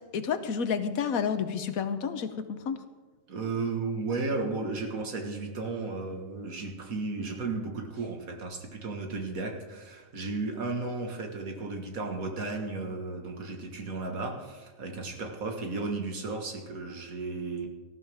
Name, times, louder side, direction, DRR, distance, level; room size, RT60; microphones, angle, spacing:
voice 1, 0.1-2.8, left 6 dB, 90° left, 10 dB, 1.4 m, -30 dB
voice 2, 3.3-17.7, right 3 dB, 85° right, 3 dB, 2.1 m, -34 dB
18.5 x 13.5 x 3.6 m, 1.3 s
omnidirectional pair, 1.4 m